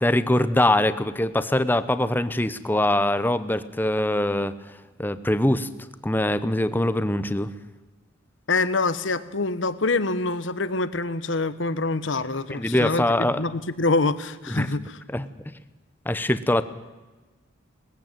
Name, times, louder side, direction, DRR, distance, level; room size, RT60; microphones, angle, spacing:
voice 1, 0.0-4.5 5.0-5.7 6.0-7.5 12.5-13.4 14.5-14.7 15.1-15.3 16.0-16.6, left 1 dB, 10° left, 13 dB, 0.8 m, -23 dB
voice 2, 8.5-14.8, left 3 dB, 65° left, 14 dB, 1.1 m, -25 dB
19.5 x 15.0 x 9.0 m, 1.2 s
head